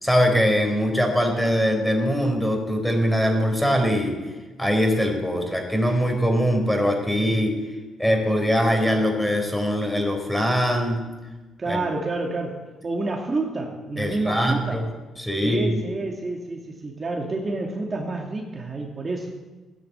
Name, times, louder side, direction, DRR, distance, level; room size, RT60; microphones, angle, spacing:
voice 1, 0.0-4.2 4.6-7.5 8.0-11.0 11.7-11.8 14.0-14.9 15.2-15.8, equal, 5° left, 3 dB, 4.5 m, -22 dB
voice 2, 11.6-14.8 15.4-19.3, right 3 dB, 35° right, 0 dB, 2.5 m, -29 dB
16.5 x 10.5 x 8.2 m, 1.2 s
cardioid pair, 90°, 0 cm